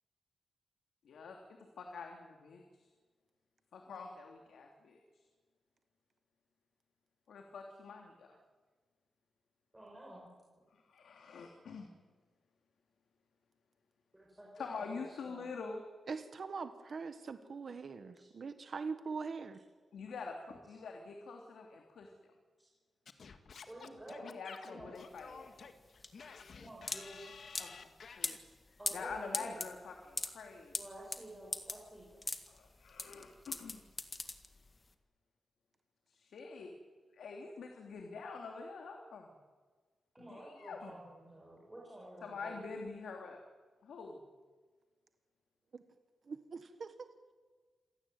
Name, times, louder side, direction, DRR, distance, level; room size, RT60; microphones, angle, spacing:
voice 1, 1.0-1.4 1.8-2.6 3.7-5.0 7.3-8.3 10.7-11.9 14.6-15.8 19.9-22.1 24.2-25.5 27.6-27.9 28.2-28.4 28.9-30.7 32.6-33.8 36.1-36.7 37.2-39.3 40.2-41.0 42.2-43.4 43.8-44.2, left 4 dB, 80° left, 2 dB, 3.1 m, -46 dB
voice 2, 9.7-10.3 14.1-15.5 18.1-18.3 22.6-22.7 23.7-24.4 24.7-24.9 26.5-27.4 28.8-29.6 30.8-32.2 40.1-42.6, right 1 dB, 10° right, -3 dB, 5.5 m, -51 dB
voice 3, 16.1-19.6 45.7-45.8 46.3-47.0, right 5 dB, 45° right, 10 dB, 1.4 m, -42 dB
Singing / Scratching (performance technique), 23.1-28.4, left 5 dB, 50° left, 1.9 m, -52 dB
sound 1, 25.0-34.9, left 3 dB, 20° left, 1.9 m, -41 dB
27.0 x 17.5 x 9.4 m, 1.4 s
wide cardioid pair, 165°, 0 cm